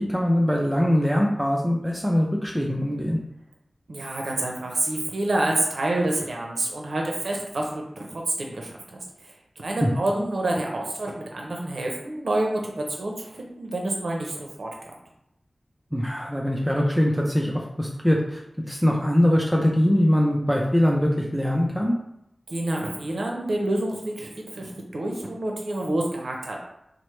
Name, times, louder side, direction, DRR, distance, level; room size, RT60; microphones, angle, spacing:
voice 1, 0.0-3.2 9.8-9.9 15.9-22.0, equal, 5° right, -1 dB, 0.4 m, -22 dB
voice 2, 3.9-14.9 22.5-26.6, right 1 dB, 75° right, 0 dB, 0.6 m, -28 dB
4.3 x 2.0 x 3.1 m, 0.80 s
wide cardioid pair, 80°, 0 cm